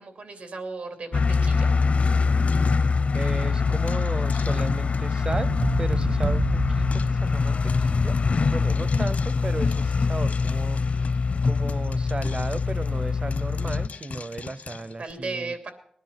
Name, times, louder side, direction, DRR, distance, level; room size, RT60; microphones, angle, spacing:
voice 1, 0.0-1.7 15.0-15.7, right 3 dB, 85° right, 2.9 m, -35 dB
sound 1, 1.1-13.9, left 4 dB, 60° left, 0.6 m, -24 dB
Frying (food), 1.5-3.4 3.9-5.2 5.6-5.7 5.9-6.0 6.3-6.4 6.9-7.2 7.7-8.2 8.7-11.3 11.7-15.1, left 5 dB, 80° left, 0.9 m, -42 dB
voice 2, 3.1-8.1 8.5-11.0 11.4-15.7, right 2 dB, 40° right, 0.6 m, -35 dB
sound 2, 5.3-7.8, right 3 dB, 60° right, 1.0 m, -29 dB
19.5 x 10.0 x 5.7 m
wide cardioid pair, 80°, 3 cm